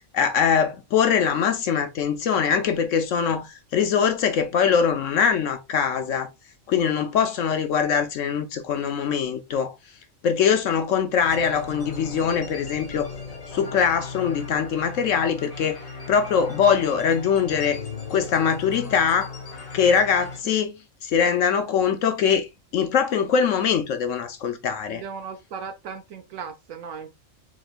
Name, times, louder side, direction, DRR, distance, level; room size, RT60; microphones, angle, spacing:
voice 1, 0.1-6.3 6.7-9.8 10.2-13.1 13.5-15.8 16.1-17.8 18.1-19.3 19.7-20.7 21.0-25.0, left 7 dB, 70° left, 0.9 m, -22 dB
sound 1, 11.2-20.4, left 4 dB, 55° left, 2.0 m, -37 dB
voice 2, 24.9-27.2, right 6 dB, 80° right, 1.0 m, -37 dB
7.2 x 3.0 x 2.4 m
omnidirectional pair, 1.4 m